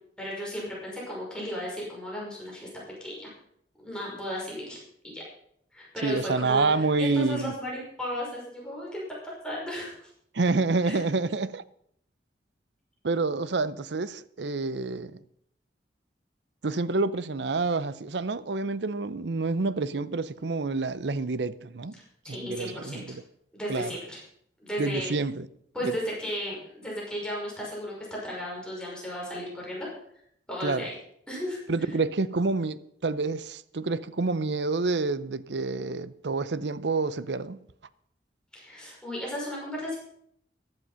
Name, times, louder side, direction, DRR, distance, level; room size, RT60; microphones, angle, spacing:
voice 1, 0.2-2.7 3.0-3.3 3.8-4.8 5.0-5.2 5.7-9.9 10.8-11.0 22.2-23.0 23.5-24.2 24.6-25.1 25.7-29.9 30.5-30.9 31.3-31.6 38.5-40.0, equal, 5° left, 5.6 m, -35 dB
voice 2, 6.0-7.5 10.3-11.6 13.0-15.2 16.6-21.9 22.3-23.2 23.7-24.0 24.8-25.5 25.8-26.0 30.6-30.9 31.7-37.6, right 3 dB, 75° right, 0.7 m, -28 dB
15.0 x 11.0 x 5.7 m
head